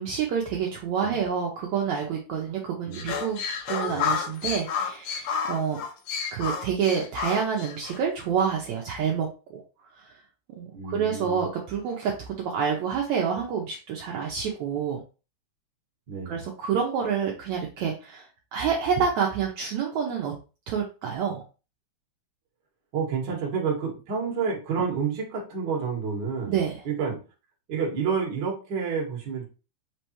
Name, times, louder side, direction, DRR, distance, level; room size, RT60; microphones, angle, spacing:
voice 1, 0.0-3.4 3.7-5.8 6.3-9.6 10.0-10.2 10.6-15.0 16.3-20.3 20.7-21.4 26.5-26.8, right 7 dB, 75° right, -1 dB, 1.8 m, -28 dB
sound 1, 2.9-8.0, left 6 dB, 70° left, 1.8 m, -30 dB
voice 2, 10.7-11.4 16.1-16.4 22.9-26.6 26.8-27.2 27.7-29.4, right 6 dB, 50° right, -2 dB, 1.4 m, -29 dB
5.3 x 3.3 x 2.9 m, 0.33 s
omnidirectional pair, 3.9 m